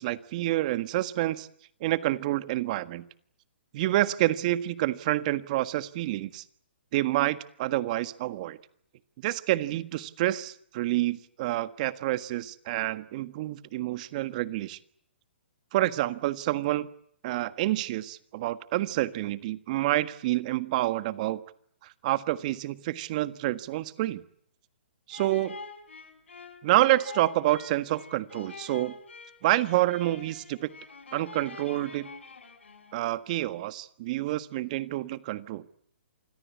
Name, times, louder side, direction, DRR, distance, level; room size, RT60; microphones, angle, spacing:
voice 1, 0.0-1.5 1.8-3.0 3.7-6.4 6.9-8.6 9.2-14.8 15.7-16.9 17.2-21.4 21.8-24.2 25.1-25.5 26.6-28.9 29.4-30.7 31.1-32.1 32.9-35.6, right 16 dB, 40° right, 13 dB, 1.6 m, -28 dB
sound 1, 25.1-33.2, left 4 dB, 90° left, 5.1 m, -46 dB
27.5 x 21.5 x 8.6 m, 0.67 s
hypercardioid pair, 145°, 6 cm